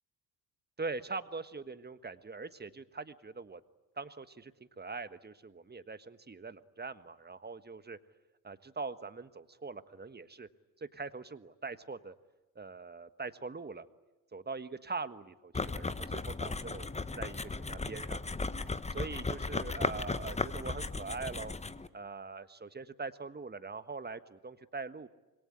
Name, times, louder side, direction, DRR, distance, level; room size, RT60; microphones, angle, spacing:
voice 1, 0.8-3.6 4.0-4.5 4.8-8.0 8.4-10.5 10.8-12.1 12.5-13.9 14.3-18.3 18.9-21.5 21.9-25.1, right 4 dB, 20° right, 12 dB, 1.4 m, -42 dB
sound 1, 15.5-21.9, left 3 dB, 15° left, 1.1 m, -36 dB
27.0 x 22.0 x 9.9 m, 1.1 s
hypercardioid pair, 50°, 48 cm